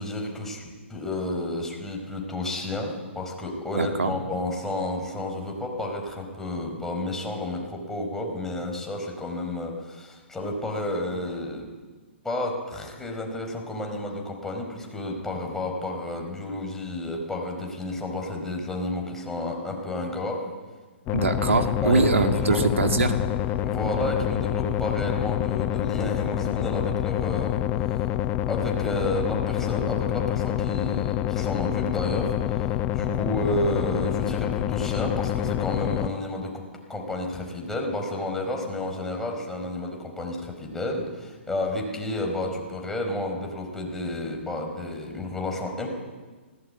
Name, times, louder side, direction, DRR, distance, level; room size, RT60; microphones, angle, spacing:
voice 1, 0.0-11.7 12.2-20.4 21.8-22.6 23.6-27.6 28.5-36.6 36.9-45.9, left 1 dB, 5° left, 1 dB, 4.4 m, -31 dB
voice 2, 3.7-4.1 21.1-23.2, right 3 dB, 90° right, 6 dB, 2.2 m, -23 dB
sound 1, 21.1-36.1, left 12 dB, 30° left, 0.8 m, -27 dB
19.0 x 17.0 x 8.7 m, 1.4 s
hypercardioid pair, 135°, 7 cm